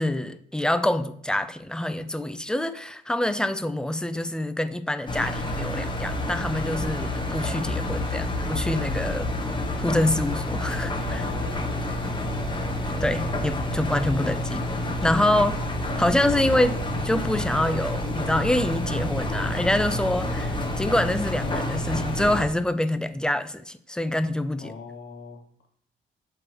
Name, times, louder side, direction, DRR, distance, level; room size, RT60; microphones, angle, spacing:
voice 1, 0.0-9.3 9.8-11.2 13.0-14.6 15.0-15.6 16.0-24.7, left 1 dB, 5° left, 11 dB, 0.4 m, -26 dB
Engine, 5.1-22.4, left 1 dB, 25° left, 1.2 m, -28 dB
voice 2, 10.9-12.4 24.6-25.4, left 4 dB, 70° left, 0 dB, 1.6 m, -41 dB
8.0 x 3.9 x 3.0 m, 0.63 s
cardioid pair, 90°, 20 cm